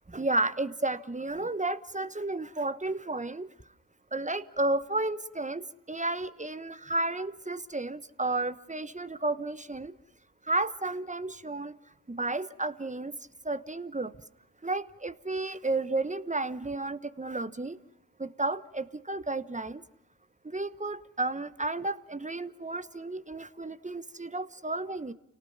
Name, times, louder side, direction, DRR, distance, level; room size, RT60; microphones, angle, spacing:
voice 1, 0.1-3.5 4.1-9.9 10.5-11.7 12.1-13.2 13.4-14.1 14.6-17.8 18.2-19.8 20.4-25.1, right 2 dB, 15° right, 13 dB, 1.0 m, -32 dB
29.5 x 18.5 x 5.8 m, 0.84 s
hypercardioid pair, 45°, 45 cm